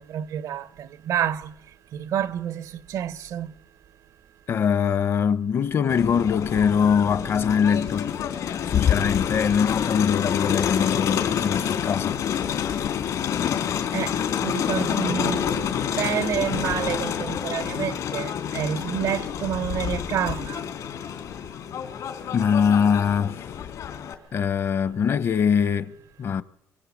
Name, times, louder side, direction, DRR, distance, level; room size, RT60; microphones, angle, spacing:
voice 1, 0.0-1.5 1.9-3.5 13.9-14.2 14.4-20.6, right 10 dB, 85° right, 1.1 m, -29 dB
voice 2, 4.5-8.1 8.7-12.2 22.3-23.5 24.3-25.9 26.2-26.4, left 7 dB, 50° left, 0.9 m, -22 dB
Crowd, 5.9-24.1, left 9 dB, 80° left, 3.4 m, -28 dB
24.5 x 24.0 x 8.7 m
cardioid pair, 150°, 6 cm